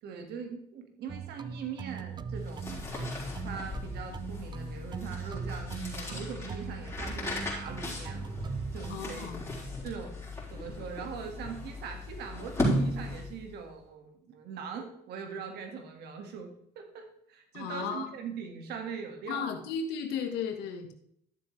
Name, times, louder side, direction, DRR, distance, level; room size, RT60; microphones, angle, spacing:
voice 1, 0.0-2.9 3.4-8.4 8.7-9.3 9.8-10.2 10.5-19.6, right 6 dB, 75° right, 4 dB, 1.9 m, -41 dB
sound 1, 1.1-9.0, right 5 dB, 25° right, 0.4 m, -40 dB
sound 2, 2.3-13.5, left 1 dB, 15° left, 4.0 m, -36 dB
voice 2, 8.9-9.4 17.5-18.1 19.3-20.9, left 6 dB, 90° left, 5 dB, 1.5 m, -35 dB
12.0 x 7.5 x 3.3 m, 0.68 s
cardioid pair, 110°, 17 cm